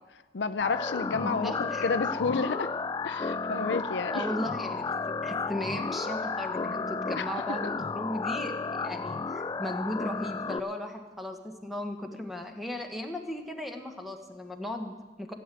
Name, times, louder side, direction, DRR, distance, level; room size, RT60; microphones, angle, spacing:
voice 1, 0.3-2.7 3.0-4.3 7.2-7.6, left 4 dB, 75° left, 13 dB, 0.6 m, -31 dB
sound 1, 0.6-10.6, left 4 dB, 25° left, 0.4 m, -33 dB
voice 2, 1.2-1.9 4.1-15.3, left 1 dB, ahead, 4 dB, 1.4 m, -36 dB
15.0 x 7.7 x 9.2 m, 1.3 s
head